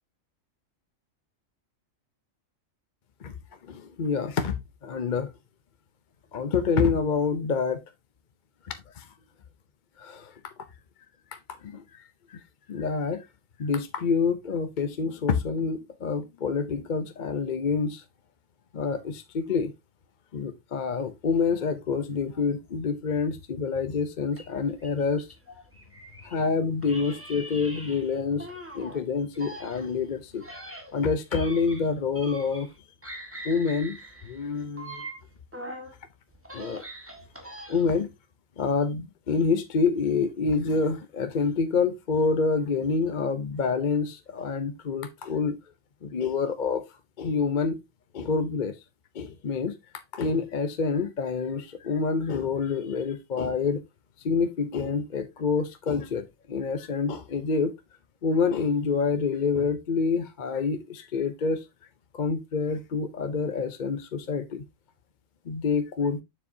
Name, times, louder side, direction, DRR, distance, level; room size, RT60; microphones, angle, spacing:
voice 1, 3.6-5.3 6.3-7.8 9.0-9.1 10.0-10.5 11.3-12.0 12.3-12.4 12.7-13.3 13.6-18.0 18.7-19.7 20.3-25.3 26.2-28.5 28.7-30.4 30.9-32.7 33.4-34.0 34.2-35.1 36.5-36.8 37.7-38.1 38.6-45.6 46.0-46.8 47.2-47.8 48.1-48.8 49.1-49.7 50.1-53.8 54.2-57.7 58.2-61.6 62.1-64.6 65.5-66.2, left 5 dB, 45° left, 0.7 m, -27 dB
sound 1, 24.3-26.4 26.8-29.0 29.3-32.8 33.0-35.9 36.3-38.0, right 1 dB, 10° right, 1.7 m, -43 dB
7.2 x 6.9 x 2.7 m
omnidirectional pair, 1.4 m